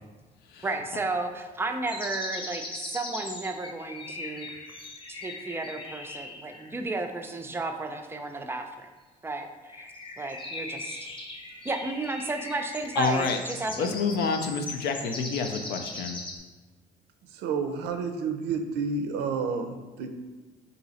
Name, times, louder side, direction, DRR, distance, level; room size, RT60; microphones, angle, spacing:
voice 1, 0.6-4.5 5.1-8.9 9.2-9.9 10.2-11.0 11.6-14.0, right 3 dB, 15° right, 5 dB, 0.4 m, -33 dB
sound 1, 1.9-6.9 9.7-16.4, left 2 dB, 30° left, 0.7 m, -39 dB
voice 2, 13.0-13.4 13.8-16.2, left 4 dB, 75° left, 6 dB, 0.5 m, -28 dB
voice 3, 17.3-20.2, right 5 dB, 85° right, 6 dB, 0.5 m, -30 dB
4.0 x 2.7 x 4.1 m, 1.3 s
cardioid pair, 110°, 17 cm